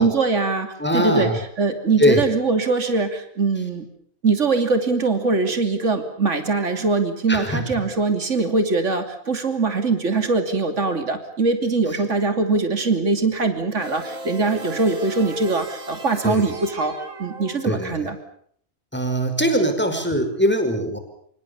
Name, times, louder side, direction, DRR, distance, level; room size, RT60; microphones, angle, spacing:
voice 1, 0.0-1.3 1.6-3.9 4.2-16.9 17.2-18.2, right 3 dB, 60° right, 7 dB, 3.2 m, -22 dB
voice 2, 0.8-1.4 2.0-2.2 7.3-7.8 16.2-16.5 17.6-17.9 18.9-21.0, equal, 5° left, 7 dB, 5.6 m, -21 dB
sound 1, 13.8-18.1, right 2 dB, 80° right, 3.1 m, -37 dB
27.0 x 25.5 x 7.1 m, 0.62 s
omnidirectional pair, 1.4 m